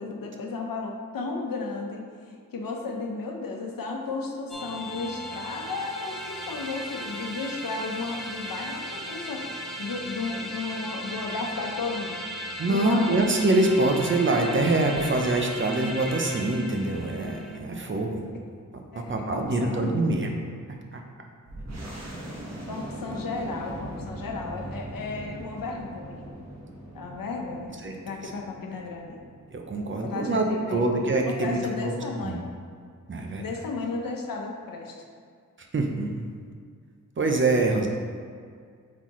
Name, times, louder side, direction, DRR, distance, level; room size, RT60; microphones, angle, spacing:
voice 1, 0.0-12.2 12.6-13.3 17.7-18.2 18.9-20.0 22.7-26.3 26.9-27.8 28.0-29.2 30.0-30.9 31.2-32.5 33.4-35.0, left 3 dB, 85° left, 1 dB, 0.9 m, -34 dB
sound 1, 4.5-17.6, equal, ahead, 0.7 m, -36 dB
voice 2, 12.6-18.2 18.7-20.3 20.7-21.0 27.8-27.9 28.2-28.3 29.5-30.4 30.7-31.9 32.2-32.4 33.1-33.4 35.6-36.2 37.2-37.9, right 2 dB, 35° right, 2 dB, 0.7 m, -25 dB
sound 2, 21.5-30.7, right 1 dB, 50° right, 1.3 m, -40 dB
8.0 x 4.2 x 3.1 m, 2.1 s
wide cardioid pair, 125°, 33 cm